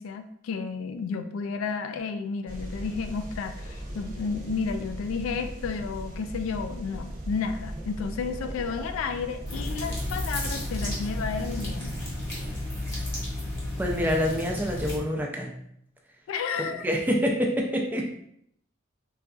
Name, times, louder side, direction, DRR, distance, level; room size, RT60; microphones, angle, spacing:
voice 1, 0.0-12.0 16.3-16.8, left 5 dB, 85° left, 7 dB, 0.3 m, -32 dB
sound 1, 2.5-12.6, equal, 40° right, 0.7 m, -38 dB
sound 2, 9.5-15.0, left 1 dB, 15° left, 0.9 m, -33 dB
voice 2, 13.8-15.5 16.8-18.0, equal, 10° right, 1 dB, 0.3 m, -26 dB
3.8 x 2.3 x 2.3 m, 0.71 s
head